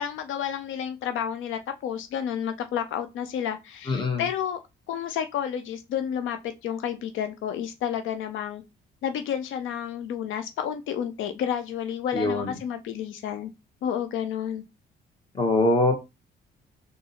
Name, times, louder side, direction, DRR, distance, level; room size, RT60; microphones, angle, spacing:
voice 1, 0.0-4.6 4.9-8.6 9.0-13.5 13.8-14.6, left 9 dB, 80° left, 0.5 m, -30 dB
voice 2, 3.9-4.2 12.1-12.5 15.4-15.9, left 2 dB, 25° left, 1.5 m, -23 dB
3.8 x 2.6 x 4.1 m
cardioid pair, 90°, 20 cm